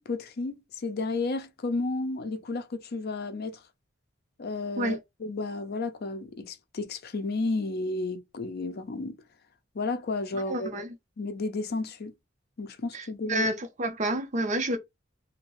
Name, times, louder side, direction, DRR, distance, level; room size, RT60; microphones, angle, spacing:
voice 1, 0.0-3.6 4.4-9.2 9.7-10.7 11.2-12.1 12.6-13.4, left 3 dB, 55° left, 0.5 m, -32 dB
voice 2, 10.5-10.9 12.9-14.8, right 1 dB, 40° right, 0.6 m, -29 dB
2.8 x 2.6 x 3.0 m
head